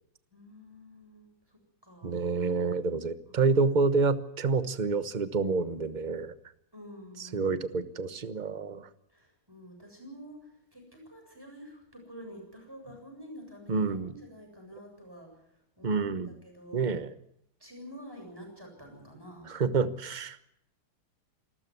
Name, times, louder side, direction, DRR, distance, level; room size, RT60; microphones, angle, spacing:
voice 1, 0.3-2.2 3.3-3.4 6.7-7.7 9.1-16.9 17.6-19.5, equal, 10° right, 2 dB, 7.7 m, -48 dB
voice 2, 2.0-6.3 7.2-8.9 13.7-14.1 15.8-16.3 16.7-17.1 19.5-20.4, right 4 dB, 30° right, 12 dB, 0.9 m, -28 dB
27.5 x 14.0 x 9.5 m, 0.74 s
omnidirectional pair, 2.3 m